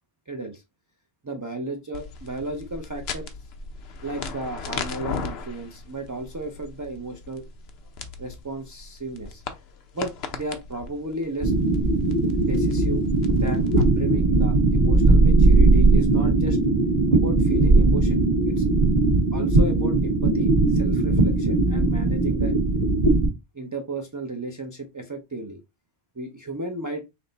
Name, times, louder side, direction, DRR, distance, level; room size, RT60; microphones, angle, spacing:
voice 1, 0.3-0.6 1.2-3.3 4.0-7.5 8.2-9.4 9.9-11.5 12.3-13.1 13.3-16.6 17.1-18.6 19.3-22.5 23.5-25.6 26.2-27.0, right 2 dB, 25° right, 3 dB, 0.4 m, -34 dB
sound 1, 1.9-13.9, left 4 dB, 75° left, 0.9 m, -36 dB
sound 2, 11.4-23.3, right 3 dB, 45° right, 1.4 m, -19 dB
5.9 x 2.1 x 3.9 m, 0.23 s
omnidirectional pair, 1.1 m